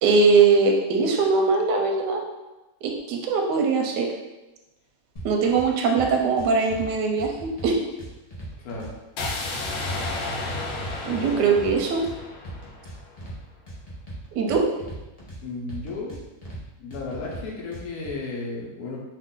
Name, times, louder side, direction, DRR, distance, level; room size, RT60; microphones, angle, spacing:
voice 1, 0.0-2.2 2.8-4.1 5.2-7.8 11.0-12.0 14.3-14.6, right 4 dB, 75° right, 1 dB, 1.1 m, -21 dB
sound 1, 5.2-5.7 6.0-6.9 7.2-8.9 9.2-10.1 10.4-12.2 12.4-13.4 13.7-15.4 15.7-16.6 16.9-18.1, right 1 dB, 50° left, 0.4 m, -38 dB
voice 2, 8.6-8.9 15.4-16.2 16.8-19.0, left 3 dB, 65° left, -3 dB, 1.2 m, -34 dB
sound 2, 9.2-13.2, left 2 dB, 85° left, 1.3 m, -32 dB
3.2 x 2.5 x 3.6 m, 1.0 s
omnidirectional pair, 2.0 m